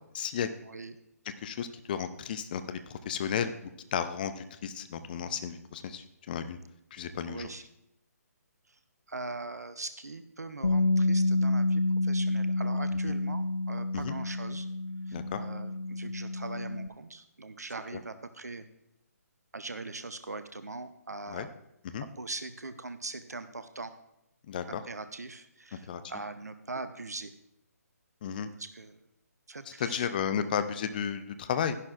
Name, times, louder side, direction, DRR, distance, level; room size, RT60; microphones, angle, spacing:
voice 1, 0.1-0.5 1.4-6.6 6.9-7.5 14.0-14.1 15.1-15.4 21.3-21.5 21.8-22.0 24.5-24.8 25.9-26.0 28.2-28.5 29.8-31.8, left 8 dB, 30° left, 10 dB, 0.6 m, -33 dB
voice 2, 0.6-1.0 7.3-7.6 8.7-8.8 9.1-14.7 15.1-18.6 19.5-21.5 22.0-23.9 24.7-27.3 28.6-29.1 29.5-30.1, right 3 dB, 75° right, 11 dB, 0.7 m, -41 dB
Bass guitar, 10.6-16.9, left 2 dB, 80° left, 0.4 m, -29 dB
12.5 x 11.0 x 2.5 m, 0.82 s
figure-of-eight pair, 140°, 9 cm